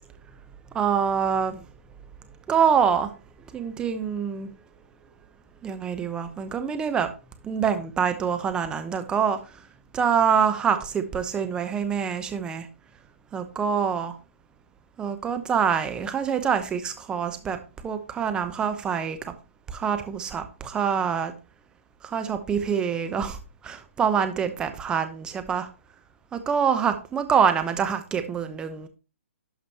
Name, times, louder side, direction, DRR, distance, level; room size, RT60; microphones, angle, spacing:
voice 1, 0.7-1.5 2.5-3.1 3.5-4.5 5.6-7.1 7.4-9.4 9.9-12.7 13.3-14.1 15.0-17.6 17.8-19.2 19.7-21.3 22.0-23.4 23.6-25.7 26.3-28.9, right 7 dB, 10° right, 0.9 m, -25 dB
12.0 x 5.0 x 2.9 m
hypercardioid pair, 145°, 7 cm